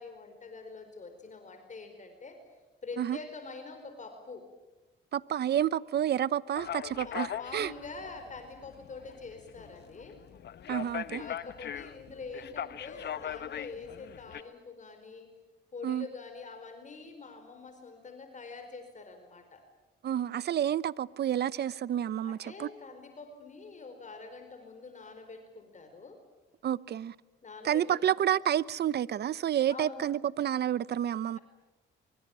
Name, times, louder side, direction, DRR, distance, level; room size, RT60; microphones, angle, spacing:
voice 1, 0.0-2.4 2.8-4.5 6.9-10.2 11.2-15.3 15.7-19.6 22.2-26.2 27.4-28.1 29.7-30.1, left 4 dB, 40° left, 4.6 m, -45 dB
voice 2, 5.1-7.7 10.7-11.2 15.8-16.1 20.0-22.7 26.6-27.1 27.6-31.4, right 10 dB, 55° right, 0.8 m, -29 dB
sound 1, 6.6-14.4, left 9 dB, 60° left, 1.1 m, -40 dB
24.5 x 24.0 x 9.0 m
cardioid pair, 90°, 20 cm